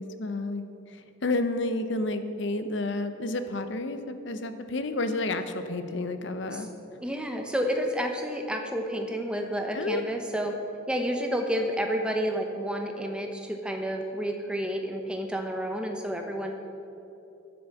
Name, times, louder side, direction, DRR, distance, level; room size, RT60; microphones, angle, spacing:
voice 1, 0.0-6.7 9.7-10.0, left 2 dB, 60° left, 9 dB, 0.7 m, -31 dB
voice 2, 7.0-10.5 10.9-16.5, equal, 5° right, 3 dB, 0.8 m, -30 dB
10.0 x 7.8 x 7.2 m, 3.0 s
head